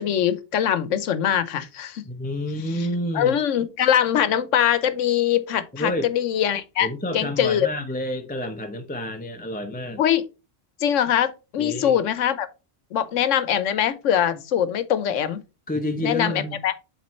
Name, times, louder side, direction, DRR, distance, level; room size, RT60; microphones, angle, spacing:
voice 1, 0.0-2.0 3.1-6.9 7.1-7.7 10.0-10.2 10.8-12.5 12.9-15.4 16.0-16.7, left 10 dB, 85° left, 1.1 m, -22 dB
voice 2, 2.0-3.3 5.7-6.1 6.8-10.0 11.6-12.0 15.7-16.6, left 1 dB, 10° left, 0.5 m, -29 dB
7.4 x 3.7 x 4.2 m
omnidirectional pair, 1.2 m